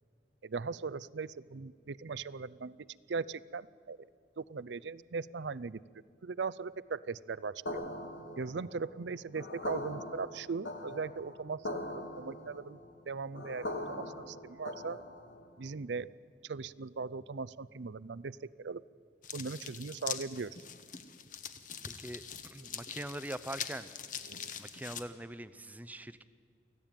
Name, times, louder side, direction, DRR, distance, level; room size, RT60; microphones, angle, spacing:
voice 1, 0.4-4.1 4.4-5.8 6.2-7.8 8.4-12.8 13.1-15.0 15.6-16.1 16.4-18.8 19.3-20.6 24.3-24.5, right 4 dB, 75° right, 18 dB, 0.5 m, -39 dB
sound 1, 7.7-15.5, left 1 dB, 85° left, 2.6 m, -41 dB
sound 2, 19.2-25.0, left 8 dB, 45° left, 1.2 m, -43 dB
voice 2, 21.9-22.2 22.5-23.9 24.6-26.2, right 1 dB, 10° right, 13 dB, 0.6 m, -42 dB
24.5 x 16.0 x 9.0 m, 2.3 s
head